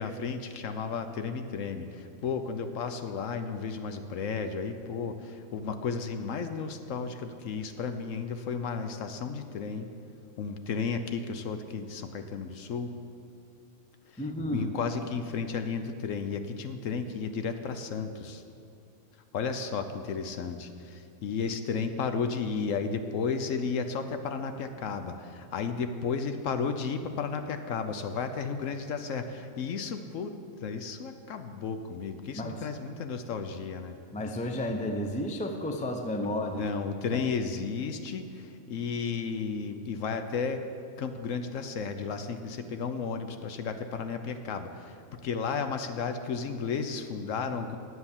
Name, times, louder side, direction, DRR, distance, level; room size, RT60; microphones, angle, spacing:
voice 1, 0.0-9.9 10.4-12.9 14.1-18.4 19.3-34.0 36.2-40.6 41.0-47.8, left 5 dB, 65° left, 8 dB, 1.0 m, -33 dB
voice 2, 14.2-14.7 32.3-32.7 34.1-36.7 37.1-37.2, left 1 dB, 10° left, 4 dB, 0.3 m, -32 dB
9.9 x 8.1 x 7.1 m, 2.5 s
omnidirectional pair, 1.6 m